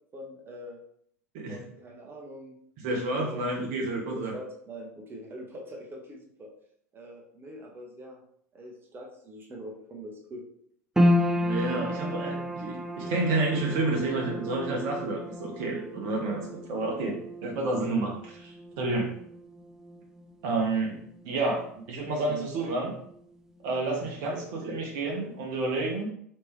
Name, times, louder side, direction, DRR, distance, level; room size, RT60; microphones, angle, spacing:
voice 1, 0.1-0.8 1.5-2.6 3.1-3.4 4.2-6.5 6.9-8.2 8.5-10.4 22.3-22.5 24.3-24.4, right 1 dB, 25° right, 0 dB, 1.1 m, -43 dB
voice 2, 2.8-4.3 11.4-17.2 17.4-19.1 20.4-21.0 21.2-21.6 21.9-22.9 23.6-26.1, right 2 dB, 50° right, -1 dB, 0.9 m, -30 dB
sound 1, 11.0-23.4 23.6-24.6 25.0-25.1, left 1 dB, 5° right, 0.5 m, -32 dB
3.2 x 3.2 x 3.3 m, 0.67 s
figure-of-eight pair, 80°, 9 cm